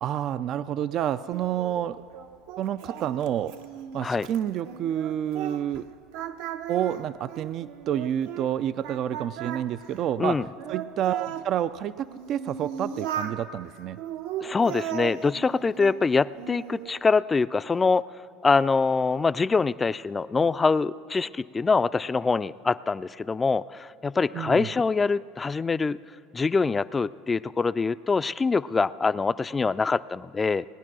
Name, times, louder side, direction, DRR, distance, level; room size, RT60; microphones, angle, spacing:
voice 1, 0.0-2.0 2.6-3.5 3.9-5.9 6.7-10.4 10.7-14.0 24.3-24.7, right 10 dB, 50° right, 14 dB, 0.3 m, -29 dB
Singing, 1.3-5.8 6.1-8.5 8.8-11.5 12.1-13.4 14.0-16.0 16.4-16.9, right 10 dB, 75° right, 0.9 m, -37 dB
voice 2, 14.4-18.1 18.4-26.0 26.3-30.7, left 4 dB, 20° left, 17 dB, 0.3 m, -24 dB
19.0 x 9.8 x 6.2 m, 2.3 s
supercardioid pair, 95°, 0 cm